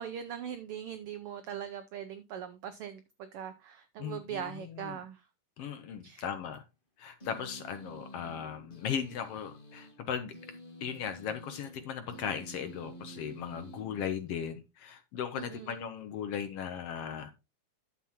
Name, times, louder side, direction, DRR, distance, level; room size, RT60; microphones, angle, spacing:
voice 1, 0.0-5.3 6.0-6.2 15.3-15.8, right 9 dB, 85° right, 1.2 m, -41 dB
voice 2, 4.0-5.0 5.6-6.6 7.0-10.3 10.8-17.3, left 8 dB, 70° left, 1.5 m, -37 dB
sound 1, 7.2-14.6, right 1 dB, 50° left, 0.6 m, -50 dB
11.0 x 7.2 x 2.9 m
omnidirectional pair, 3.3 m